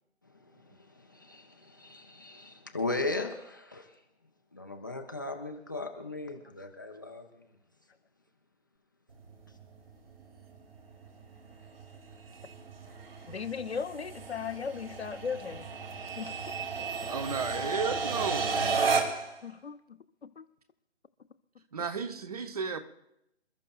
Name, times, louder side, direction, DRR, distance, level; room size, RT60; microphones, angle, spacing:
voice 1, 0.5-3.9 4.5-7.4, left 2 dB, 15° left, 0.6 m, -37 dB
sound 1, 9.1-19.4, right 4 dB, 55° right, 2.4 m, -34 dB
voice 2, 13.3-15.7 16.2-16.3 16.8-17.1 19.4-20.4 21.8-21.9, left 6 dB, 60° left, 0.9 m, -38 dB
voice 3, 17.1-18.7 21.7-22.8, right 5 dB, 35° right, 0.9 m, -34 dB
27.0 x 13.0 x 2.3 m
figure-of-eight pair, 155°, 35 cm